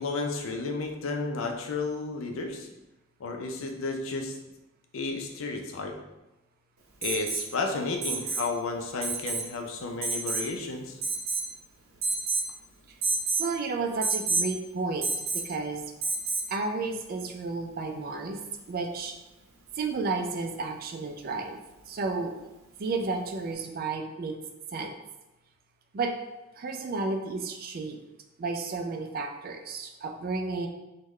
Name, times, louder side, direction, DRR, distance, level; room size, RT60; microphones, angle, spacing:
voice 1, 0.0-2.7 3.2-4.3 4.9-5.9 7.0-11.0, left 3 dB, 70° left, 3 dB, 0.5 m, -32 dB
Alarm, 7.0-7.5 8.0-8.5 9.0-9.5 10.0-10.5 11.0-11.5 12.0-12.5 13.0-13.5 14.0-14.5 15.0-15.5 16.0-16.5 18.2-18.3, right 3 dB, 90° right, 0.7 m, -29 dB
voice 2, 13.4-15.1 15.4-15.8 16.5-18.4 18.7-19.1 19.8-21.6 21.9-22.3 22.8-24.4 24.7-24.9 25.9-26.1 26.6-28.0 28.4-30.7, right 3 dB, 45° right, 4 dB, 0.4 m, -32 dB
3.6 x 2.2 x 3.1 m, 1.0 s
head